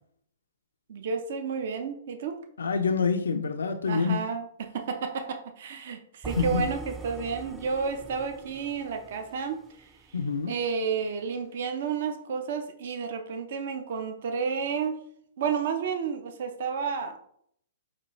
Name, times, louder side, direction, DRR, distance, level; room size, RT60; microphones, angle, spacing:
voice 1, 0.9-2.4 3.9-9.9 10.5-15.0 15.4-17.2, right 6 dB, 60° right, 7 dB, 0.6 m, -31 dB
voice 2, 2.6-4.2 6.4-6.7 10.1-10.5, left 5 dB, 85° left, 5 dB, 0.3 m, -26 dB
sound 1, 6.2-10.3, right 2 dB, 10° right, 0.3 m, -42 dB
4.1 x 2.3 x 3.1 m, 0.66 s
hypercardioid pair, 130°, 0 cm